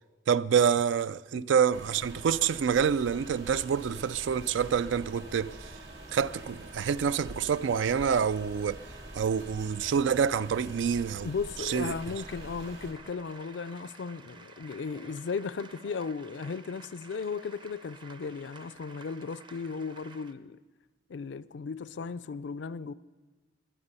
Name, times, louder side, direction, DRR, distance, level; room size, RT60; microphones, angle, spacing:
voice 1, 0.3-5.7 6.1-8.8 9.1-11.3 11.6-11.9, right 7 dB, 90° right, 0.4 m, -27 dB
sound 1, 1.7-12.9, right 1 dB, 65° right, 2.4 m, -45 dB
voice 2, 11.2-20.6 21.1-22.9, left 5 dB, 75° left, 0.4 m, -36 dB
sound 2, 11.6-20.3, right 3 dB, 25° right, 0.6 m, -52 dB
21.5 x 8.8 x 5.5 m
head